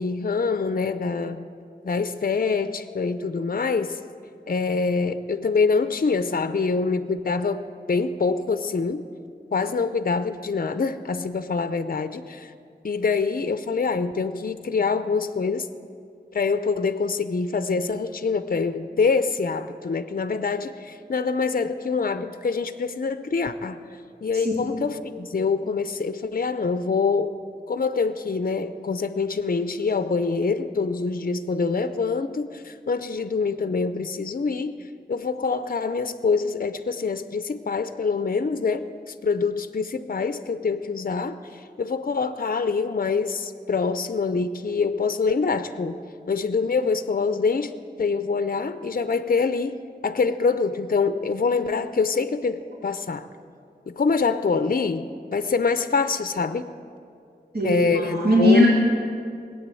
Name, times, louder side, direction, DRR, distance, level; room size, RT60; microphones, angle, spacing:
voice 1, 0.0-1.4 1.8-4.0 4.5-9.0 9.5-12.5 12.8-15.7 16.3-23.8 24.2-27.4 27.7-46.0 46.3-47.7 48.0-53.3 53.9-56.7 57.6-58.7, left 4 dB, 55° left, 11 dB, 0.6 m, -25 dB
voice 2, 57.5-58.7, equal, 60° right, -4 dB, 3.0 m, -19 dB
20.0 x 8.6 x 7.6 m, 2.4 s
wide cardioid pair, 75°, 18 cm